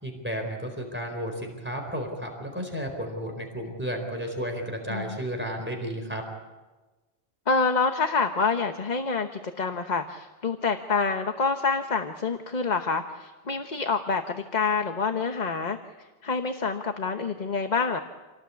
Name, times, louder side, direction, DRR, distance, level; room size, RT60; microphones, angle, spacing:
voice 1, 0.0-6.2, equal, 10° right, 2 dB, 4.2 m, -33 dB
voice 2, 7.5-15.8 16.2-18.0, left 4 dB, 45° left, 6 dB, 1.2 m, -27 dB
28.0 x 18.5 x 8.6 m, 1.2 s
omnidirectional pair, 1.1 m